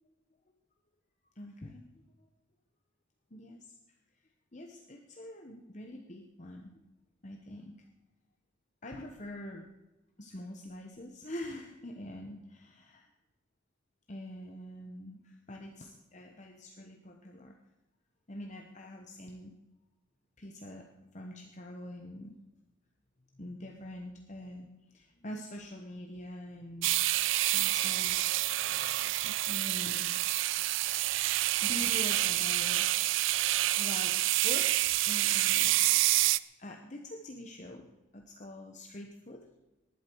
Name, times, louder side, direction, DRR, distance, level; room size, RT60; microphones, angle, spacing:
voice 1, 1.4-1.9 3.3-3.7 4.5-6.7 7.2-7.8 8.8-9.7 10.2-13.1 14.1-17.5 18.3-19.5 20.4-20.9 21.1-22.3 23.3-27.2 27.5-28.2 29.4-30.2 30.5-30.8 31.6-32.9 33.8-34.7 35.1-35.9 36.6-37.8 38.1-39.5, left 1 dB, 35° left, 2 dB, 1.0 m, -44 dB
sound 1, 26.8-36.4, right 16 dB, 70° right, 0.4 m, -28 dB
19.0 x 11.5 x 4.6 m, 1.0 s
head